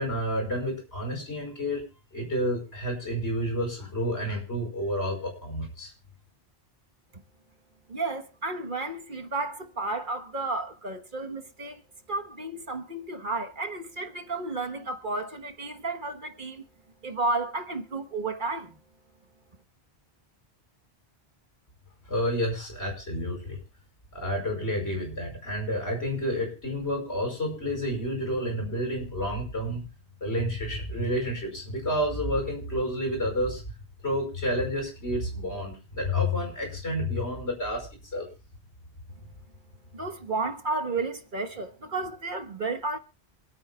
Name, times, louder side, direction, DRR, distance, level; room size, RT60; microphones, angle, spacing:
voice 1, 0.0-1.8 2.1-5.9 22.1-23.6 24.1-29.8 30.2-33.6 34.0-37.9 38.1-38.3, equal, 75° left, 5.6 m, -30 dB
voice 2, 7.9-11.8 12.1-16.6 17.0-18.8 39.9-43.0, right 3 dB, 50° right, 1.3 m, -32 dB
27.0 x 9.4 x 2.3 m
omnidirectional pair, 1.1 m